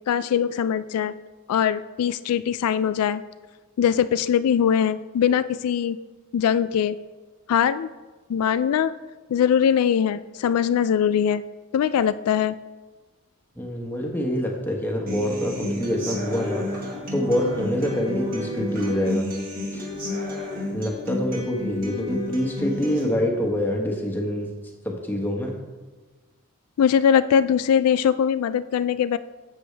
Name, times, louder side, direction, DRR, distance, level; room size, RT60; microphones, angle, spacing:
voice 1, 0.1-1.1 1.5-3.2 3.8-6.0 6.3-7.0 7.5-7.9 8.3-8.9 9.3-11.4 11.7-12.6 26.8-29.2, left 8 dB, 85° left, 14 dB, 0.3 m, -21 dB
voice 2, 13.5-16.9 17.1-19.3 19.7-19.9 20.7-24.5 24.8-25.6, equal, 10° left, 0 dB, 1.3 m, -26 dB
Human voice / Acoustic guitar, 15.1-23.0, left 1 dB, 40° right, 1.9 m, -31 dB
11.5 x 7.9 x 3.4 m, 1.3 s
head